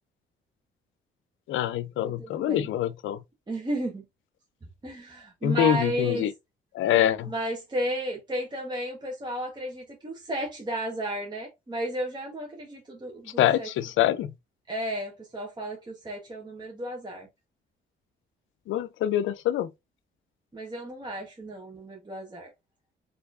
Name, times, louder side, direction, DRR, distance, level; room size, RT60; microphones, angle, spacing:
voice 1, 1.5-3.2 5.4-6.3 6.7-7.3 13.4-14.3 18.7-19.7, left 11 dB, 75° left, 0.6 m, -25 dB
voice 2, 2.0-2.7 3.5-4.0 4.8-6.3 7.3-13.7 14.7-17.3 20.5-22.5, right 1 dB, 20° right, 1.3 m, -33 dB
4.3 x 3.0 x 2.5 m
cardioid pair, 90°, 20 cm